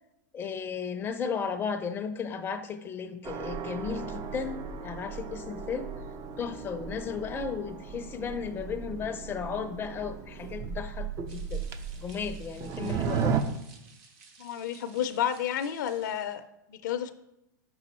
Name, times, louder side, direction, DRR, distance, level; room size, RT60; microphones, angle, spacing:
voice 1, 0.3-5.9 6.4-11.6 12.0-13.4, left 6 dB, 20° left, 7 dB, 0.5 m, -35 dB
sound 1, 3.2-13.4, right 7 dB, 35° right, 0.5 m, -35 dB
sound 2, 11.3-16.4, right 4 dB, 50° right, 1.1 m, -56 dB
voice 2, 14.4-17.1, left 10 dB, 70° left, 10 dB, 0.5 m, -31 dB
6.1 x 3.8 x 4.3 m, 0.86 s
hypercardioid pair, 110°, 10 cm